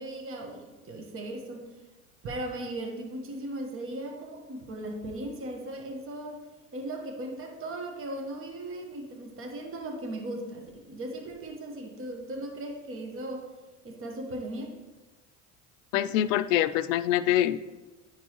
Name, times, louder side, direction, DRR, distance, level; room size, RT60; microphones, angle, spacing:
voice 1, 0.0-1.7 2.2-6.5 6.7-13.5 13.8-14.8, right 1 dB, 35° right, 3 dB, 1.2 m, -37 dB
voice 2, 15.9-17.6, left 12 dB, 85° left, 13 dB, 0.5 m, -25 dB
10.5 x 4.5 x 3.0 m, 1.2 s
supercardioid pair, 100°, 38 cm